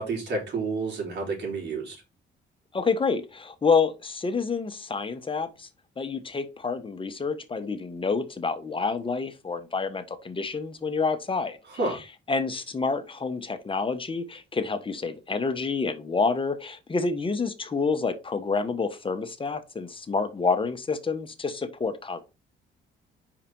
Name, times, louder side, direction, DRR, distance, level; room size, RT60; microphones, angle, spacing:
voice 1, 0.0-2.0 11.7-12.0, right 3 dB, 60° right, 4.0 m, -30 dB
voice 2, 2.7-5.7 6.0-11.6 11.9-12.0 12.3-22.2, left 4 dB, 25° left, 1.2 m, -28 dB
5.1 x 5.0 x 4.6 m
cardioid pair, 90°, 20 cm